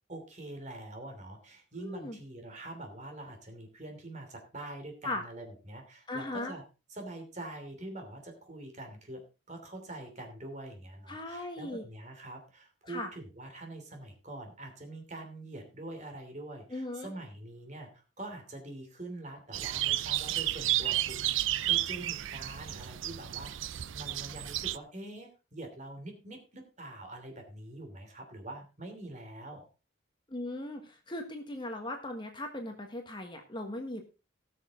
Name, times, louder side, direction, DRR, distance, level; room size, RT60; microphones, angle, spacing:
voice 1, 0.1-6.6 6.9-29.7, right 2 dB, 35° right, 5 dB, 2.9 m, -45 dB
voice 2, 1.7-2.2 5.0-5.2 6.1-6.5 11.1-11.8 12.9-13.1 16.7-17.1 30.3-34.0, left 1 dB, 20° left, 4 dB, 1.4 m, -38 dB
sound 1, 19.5-24.8, right 14 dB, 70° right, 0.5 m, -32 dB
18.0 x 6.6 x 3.7 m, 0.31 s
head